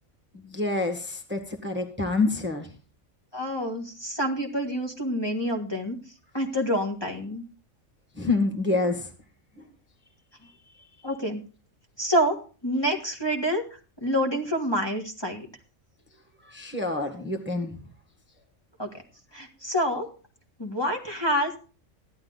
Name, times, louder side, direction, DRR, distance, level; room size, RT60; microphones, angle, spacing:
voice 1, 0.5-2.7 8.2-9.0 16.5-17.7, left 3 dB, 10° right, 3 dB, 1.6 m, -27 dB
voice 2, 3.3-6.0 6.3-7.4 11.0-11.4 12.0-12.4 12.6-15.5 18.8-18.9 19.3-20.1 20.6-21.6, equal, 20° left, 1 dB, 1.9 m, -27 dB
14.5 x 11.5 x 4.0 m, 0.37 s
omnidirectional pair, 1.4 m